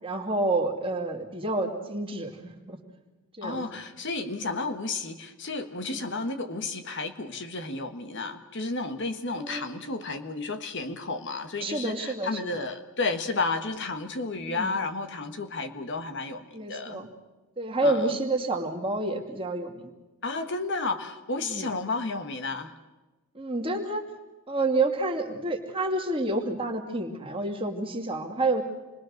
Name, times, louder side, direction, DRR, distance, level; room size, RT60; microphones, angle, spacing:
voice 1, 0.0-2.8 3.4-3.6 5.9-6.0 9.4-9.7 11.6-12.5 14.4-14.8 16.5-17.1 17.6-19.9 21.4-21.7 23.3-24.1 24.5-28.6, right 2 dB, 25° right, 2 dB, 2.4 m, -29 dB
voice 2, 3.4-17.0 17.8-18.1 20.2-22.7, left 3 dB, 55° left, 8 dB, 1.5 m, -32 dB
28.0 x 21.5 x 6.5 m, 1.2 s
head